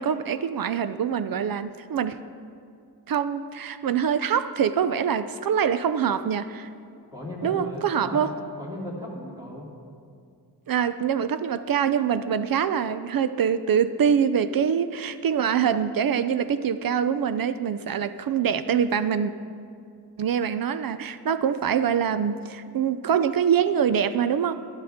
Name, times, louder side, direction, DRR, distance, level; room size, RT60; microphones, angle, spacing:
voice 1, 0.0-2.2 3.1-6.7 7.4-8.3 10.7-19.3 20.2-24.6, right 8 dB, 60° right, 13 dB, 0.5 m, -24 dB
voice 2, 7.1-8.3 8.6-9.7, equal, 10° right, -5 dB, 2.9 m, -36 dB
13.0 x 12.0 x 3.6 m, 2.3 s
wide cardioid pair, 115°, 41 cm